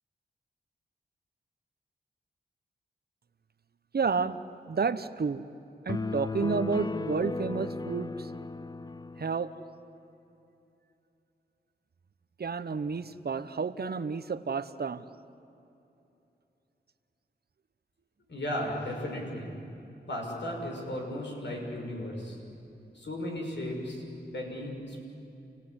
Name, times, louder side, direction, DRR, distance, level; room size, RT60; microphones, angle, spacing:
voice 1, 3.9-4.4 4.7-5.4 5.8-8.3 9.2-9.5 12.4-15.0, right 5 dB, 55° right, 13 dB, 1.0 m, -30 dB
sound 1, 5.9-9.4, left 4 dB, 20° left, 0.5 m, -35 dB
voice 2, 18.3-19.5 20.1-22.4 22.9-24.0 24.3-25.0, left 1 dB, 70° left, 0 dB, 6.4 m, -35 dB
29.0 x 17.0 x 9.9 m, 2.9 s
cardioid pair, 65°, 19 cm